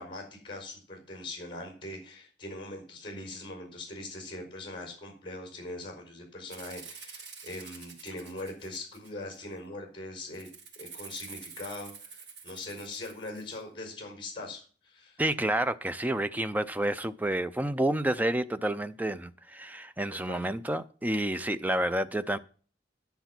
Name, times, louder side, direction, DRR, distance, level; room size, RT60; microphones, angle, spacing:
voice 1, 0.0-10.5 10.8-15.2 20.3-20.5, left 2 dB, 30° left, 4.7 m, -41 dB
Rattle (instrument), 6.5-9.3 10.3-13.6, right 5 dB, 65° right, 2.1 m, -47 dB
voice 2, 15.2-22.4, right 1 dB, 10° right, 0.4 m, -29 dB
10.5 x 6.8 x 5.9 m
head